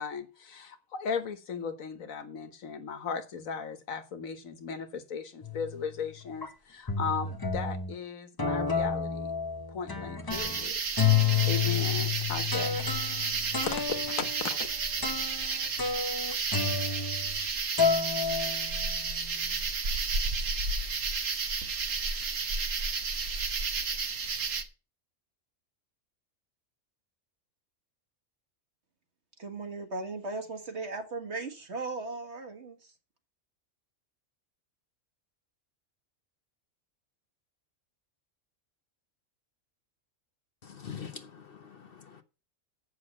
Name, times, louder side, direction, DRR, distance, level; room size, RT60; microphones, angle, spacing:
voice 1, 0.0-9.3 9.7-10.7 11.4-13.2 13.7-14.7, left 6 dB, 80° left, 9 dB, 1.6 m, -37 dB
sound 1, 5.4-5.8 6.4-6.5 6.9-7.9 8.4-10.6 11.0-17.5 17.8-19.2, left 6 dB, 20° left, 0.8 m, -30 dB
sound 2, 10.3-24.6, right 4 dB, 70° right, 1.6 m, -32 dB
voice 2, 29.4-32.9, right 3 dB, 55° right, 5 dB, 2.0 m, -37 dB
voice 3, 40.6-42.2, left 7 dB, 50° left, 8 dB, 0.9 m, -44 dB
8.0 x 6.4 x 7.4 m, 0.33 s
omnidirectional pair, 1.4 m